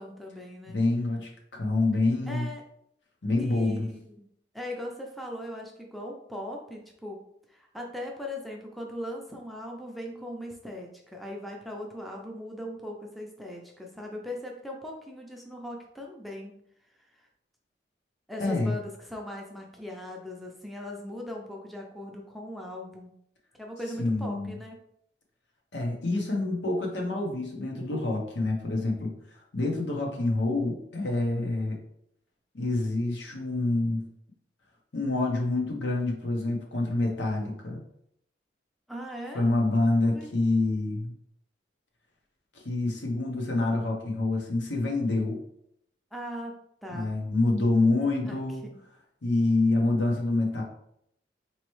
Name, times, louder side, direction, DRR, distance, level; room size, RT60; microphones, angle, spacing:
voice 1, 0.0-0.8 2.3-2.6 3.4-4.0 4.5-16.6 16.9-17.3 18.3-23.1 23.6-24.8 38.9-39.5 40.1-40.3 46.1-46.5 46.8-47.1 48.2-48.8, left 1 dB, ahead, -1 dB, 0.5 m, -39 dB
voice 2, 0.7-2.5 3.2-3.9 18.4-18.8 24.0-24.5 25.7-29.1 29.5-31.8 32.5-34.0 34.9-37.8 39.3-41.1 42.6-45.4 46.9-48.6 49.2-50.6, left 2 dB, 80° left, 0 dB, 1.0 m, -27 dB
4.2 x 3.0 x 3.1 m, 0.73 s
head